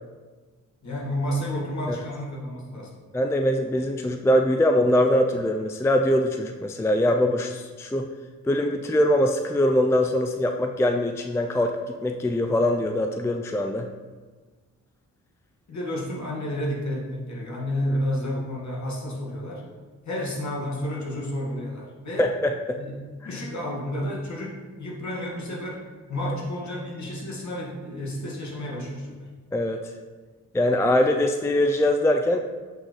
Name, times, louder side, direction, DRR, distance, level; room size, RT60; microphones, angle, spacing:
voice 1, 0.8-2.9 15.7-19.6 20.1-22.3 22.8-23.0 23.2-25.8 26.1-29.3, left 1 dB, 50° left, -3 dB, 1.8 m, -31 dB
voice 2, 3.1-8.1 8.4-13.9 22.2-22.8 29.5-29.9 30.5-32.4, left 1 dB, 10° left, 5 dB, 0.4 m, -22 dB
7.8 x 4.1 x 3.1 m, 1.4 s
supercardioid pair, 50°, 35 cm